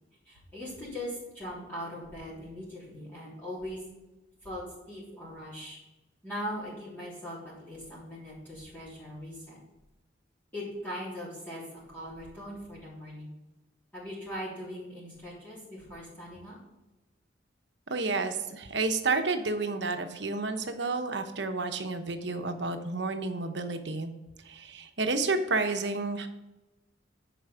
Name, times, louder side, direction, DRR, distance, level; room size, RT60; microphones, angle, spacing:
voice 1, 0.2-3.8 4.4-5.8 6.2-9.6 10.5-11.6 11.9-13.3 13.9-16.6, equal, 10° left, -9 dB, 3.3 m, -40 dB
voice 2, 17.9-24.1 24.4-26.3, right 3 dB, 70° right, 6 dB, 1.0 m, -30 dB
10.0 x 5.2 x 5.0 m, 1.0 s
head